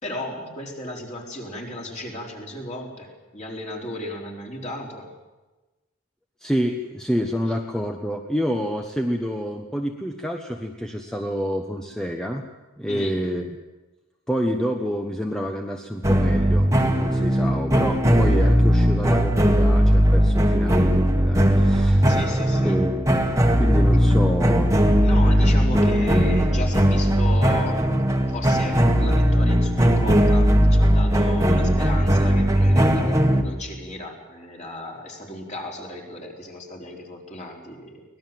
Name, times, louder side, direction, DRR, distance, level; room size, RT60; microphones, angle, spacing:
voice 1, 0.0-5.1 12.9-13.2 22.0-23.0 24.9-38.0, left 1 dB, 35° left, 0 dB, 4.1 m, -35 dB
voice 2, 6.4-12.4 12.8-13.5 14.3-22.1 22.6-23.3 23.6-24.8, equal, 5° left, 3 dB, 1.1 m, -28 dB
sound 1, 16.0-33.4, equal, 15° right, 1.7 m, -18 dB
24.0 x 19.0 x 7.7 m, 1.2 s
head